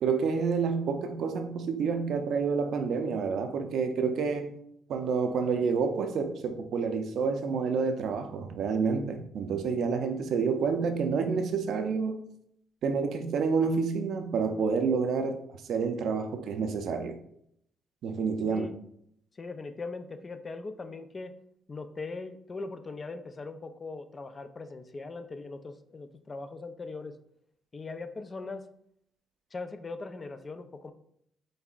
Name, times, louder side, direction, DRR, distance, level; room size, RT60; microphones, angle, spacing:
voice 1, 0.0-4.6 4.9-12.2 12.8-17.2 18.0-18.7, right 5 dB, 70° right, 0.5 m, -29 dB
voice 2, 19.3-21.3 21.7-27.2 27.7-28.7 29.5-30.9, left 3 dB, 35° left, 0.4 m, -40 dB
5.4 x 3.4 x 2.4 m
cardioid pair, 90°, 0 cm